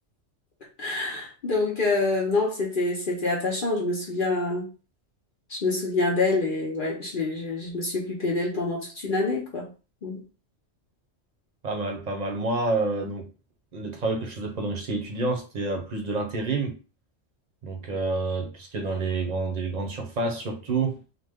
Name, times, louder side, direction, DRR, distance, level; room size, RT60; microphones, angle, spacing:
voice 1, 0.8-4.7 5.5-9.7 10.0-10.2, left 3 dB, 50° left, 0.9 m, -26 dB
voice 2, 11.6-13.3 13.7-16.7 17.6-21.0, right 3 dB, 40° right, 0.8 m, -28 dB
3.3 x 2.1 x 3.5 m
omnidirectional pair, 1.2 m